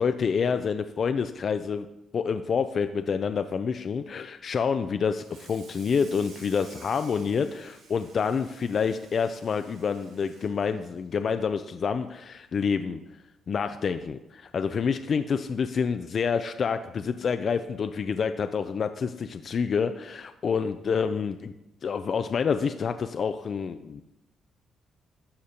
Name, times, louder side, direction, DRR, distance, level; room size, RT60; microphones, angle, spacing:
voice 1, 0.0-1.9 2.1-13.0 13.5-21.5 21.8-24.0, left 6 dB, 50° left, 9 dB, 0.3 m, -28 dB
Water tap faucet / Sink (filling or washing), 5.1-11.8 12.1-12.4 12.7-12.8 13.3-13.4 14.5-14.6 15.0-15.3, right 4 dB, 80° right, 1.3 m, -53 dB
12.5 x 5.0 x 2.8 m, 0.93 s
cardioid pair, 90°, 0 cm